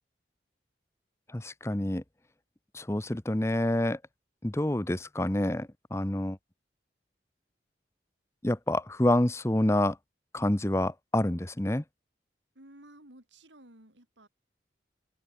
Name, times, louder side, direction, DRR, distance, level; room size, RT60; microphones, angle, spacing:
voice 1, 1.3-2.0 2.7-4.0 4.4-6.4 8.4-10.0 10.3-11.8, left 1 dB, 15° left, 0.8 m, -27 dB
voice 2, 12.5-14.3, right 1 dB, 90° right, 6.6 m, -54 dB
head